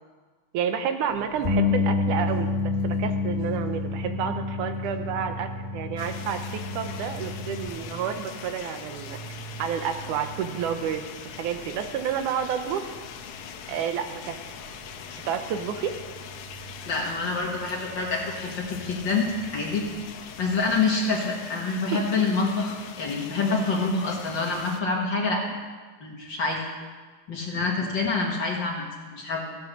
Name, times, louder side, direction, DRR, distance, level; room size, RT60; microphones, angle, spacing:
voice 1, 0.5-9.2 9.6-11.0 11.4-12.8 13.7-14.4 15.3-15.9 21.9-22.0, right 8 dB, 90° right, 7 dB, 2.5 m, -30 dB
Fixed-wing aircraft airplane, 1.1-20.8, right 2 dB, 50° right, 4.3 m, -45 dB
Bass guitar, 1.4-7.7, left 4 dB, 20° right, 2.8 m, -28 dB
sound 1, 6.0-24.8, left 8 dB, 75° left, 2.2 m, -42 dB
voice 2, 16.9-19.9 20.4-25.4 26.0-26.6 27.3-28.8 29.1-29.5, left 3 dB, 45° left, -1 dB, 2.0 m, -26 dB
15.0 x 9.6 x 6.6 m, 1.4 s
omnidirectional pair, 3.5 m